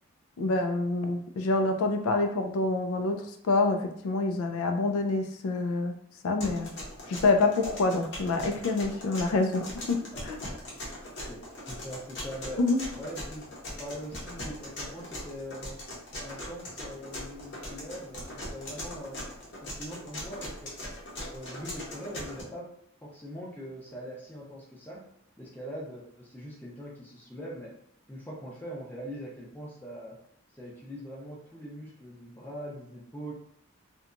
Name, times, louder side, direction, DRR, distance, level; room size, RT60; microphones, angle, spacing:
voice 1, 0.4-6.0 6.2-6.7 7.1-10.4 12.6-12.8, left 3 dB, 80° left, 5 dB, 0.4 m, -27 dB
sound 1, 6.4-22.4, left 1 dB, 50° left, 0.8 m, -40 dB
voice 2, 11.3-12.6 12.9-13.4 13.8-15.8 16.2-20.8 21.3-22.7 23.0-25.0 25.4-27.7 28.1-30.2 30.5-33.3, equal, 10° left, -4 dB, 0.5 m, -42 dB
2.8 x 2.2 x 2.5 m, 0.67 s
head